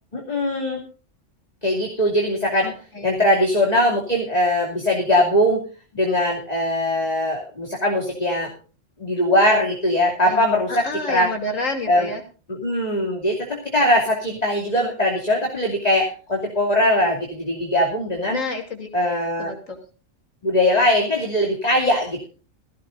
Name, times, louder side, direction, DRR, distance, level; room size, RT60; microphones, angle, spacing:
voice 1, 0.1-0.8 1.6-2.7 3.0-5.6 5.9-8.5 9.0-11.3 11.9-12.1 12.5-18.4 18.9-19.5 20.4-22.3, left 1 dB, 30° left, 0 dB, 2.8 m, -21 dB
voice 2, 2.6-3.2 10.3-12.2 18.3-18.9 19.4-19.8, left 2 dB, 85° left, 2 dB, 3.4 m, -30 dB
18.0 x 16.0 x 2.6 m, 0.37 s
omnidirectional pair, 1.3 m